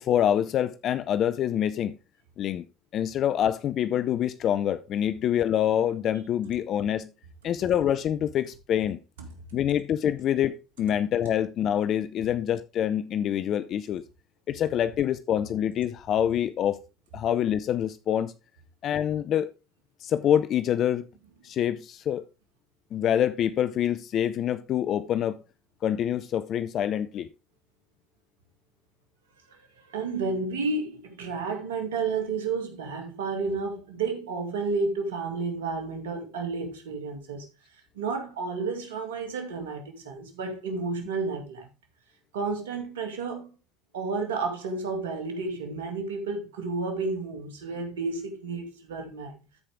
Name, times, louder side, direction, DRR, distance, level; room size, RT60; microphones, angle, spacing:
voice 1, 0.0-1.9 2.4-2.6 2.9-7.1 7.4-9.0 9.5-14.0 14.5-16.8 17.1-18.3 18.8-19.5 20.0-21.1 21.4-22.2 22.9-25.4 25.8-27.3, left 10 dB, 50° left, 0.6 m, -26 dB
voice 2, 29.5-37.5 37.9-41.7 42.3-43.5 43.9-49.4, right 4 dB, 85° right, 2.2 m, -31 dB
13.5 x 5.0 x 3.5 m
hypercardioid pair, 75°, 0 cm